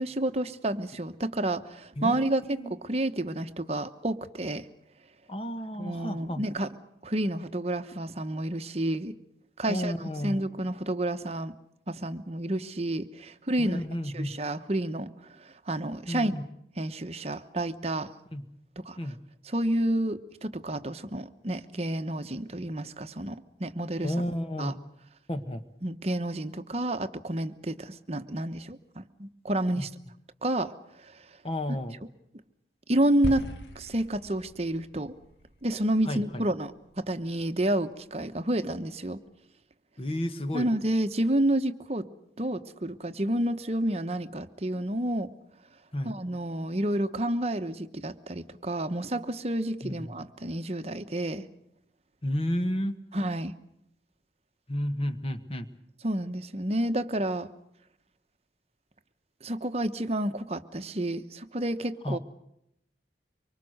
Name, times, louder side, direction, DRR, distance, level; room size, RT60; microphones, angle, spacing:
voice 1, 0.0-4.7 5.8-6.7 7.0-9.1 9.6-9.9 10.2-11.5 11.9-16.4 16.8-18.1 18.8-19.0 19.4-24.1 24.6-24.8 25.8-29.9 30.4-30.7 31.0-31.2 32.9-33.4 33.7-35.1 35.6-39.2 40.5-42.1 42.4-45.3 46.0-51.5 53.1-53.5 56.0-57.5 59.4-62.2, right 1 dB, 35° right, 9 dB, 1.0 m, -30 dB
voice 2, 2.0-2.7 5.3-6.4 9.7-10.4 13.6-14.3 16.1-16.4 18.3-18.4 19.0-19.2 24.0-24.8 25.3-25.6 29.8-29.9 31.4-32.0 36.1-36.4 40.0-40.7 45.9-46.1 49.8-50.1 52.2-53.0 54.7-55.7 62.0-62.2, equal, 30° left, 9 dB, 1.4 m, -32 dB
sound 1, 33.2-37.6, equal, 85° left, 2.0 m, -41 dB
25.0 x 24.0 x 6.5 m, 0.77 s
head